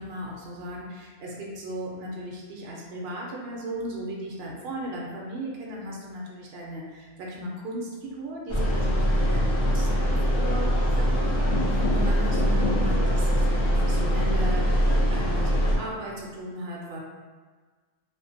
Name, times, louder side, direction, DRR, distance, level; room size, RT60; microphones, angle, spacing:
voice 1, 0.0-17.0, right 1 dB, 70° right, -2 dB, 0.8 m, -36 dB
sound 1, 8.5-15.8, equal, 35° left, 0.5 m, -23 dB
2.5 x 2.1 x 2.5 m, 1.4 s
omnidirectional pair, 1.1 m